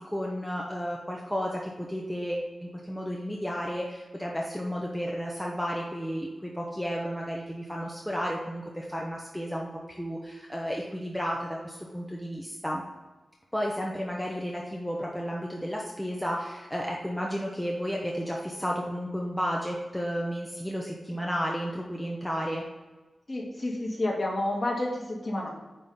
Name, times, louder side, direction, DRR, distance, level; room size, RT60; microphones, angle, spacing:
voice 1, 0.0-9.7 10.0-12.8 13.5-22.6, equal, 5° left, -2 dB, 0.8 m, -32 dB
voice 2, 23.3-25.5, left 1 dB, 30° left, -2 dB, 1.8 m, -30 dB
9.5 x 3.7 x 5.4 m, 1.2 s
wide cardioid pair, 175°, 0 cm